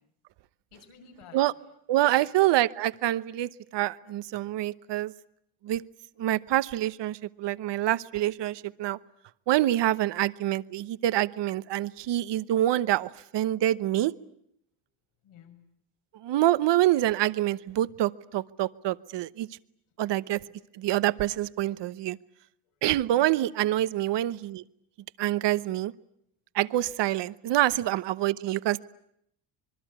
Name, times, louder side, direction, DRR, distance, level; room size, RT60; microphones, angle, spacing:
voice 1, 0.7-1.4 2.1-2.3 8.5-8.6 10.1-10.2 15.2-15.6 20.1-20.4 23.1-23.4 27.7-27.9, left 6 dB, 80° left, 5 dB, 6.4 m, -52 dB
voice 2, 1.9-5.1 5.6-5.8 6.2-9.0 9.5-14.1 16.1-19.5 20.0-20.4 20.7-22.2 22.8-24.6 25.2-25.9 26.5-28.8, right 14 dB, 55° right, 16 dB, 1.0 m, -26 dB
26.0 x 22.5 x 9.4 m, 0.72 s
cardioid pair, 145°, 50 cm